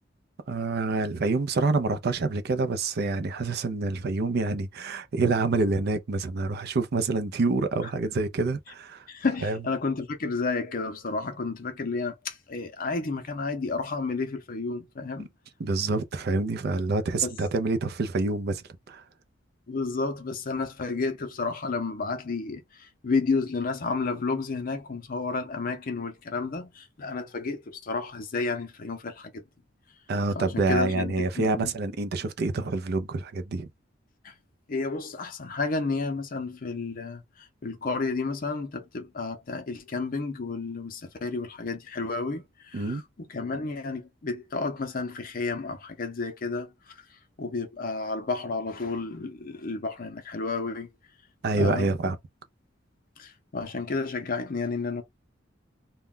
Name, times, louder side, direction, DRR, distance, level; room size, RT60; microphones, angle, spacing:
voice 1, 0.5-9.0 9.4-9.6 15.6-19.0 30.1-33.7 42.7-43.0 51.4-52.2, right 3 dB, 55° right, 0.5 m, -27 dB
voice 2, 9.1-15.3 17.2-17.3 19.7-29.4 30.4-31.7 34.2-34.3 34.7-50.9 51.5-51.9 53.2-55.0, left 4 dB, 50° left, 0.6 m, -31 dB
2.2 x 2.2 x 3.6 m
head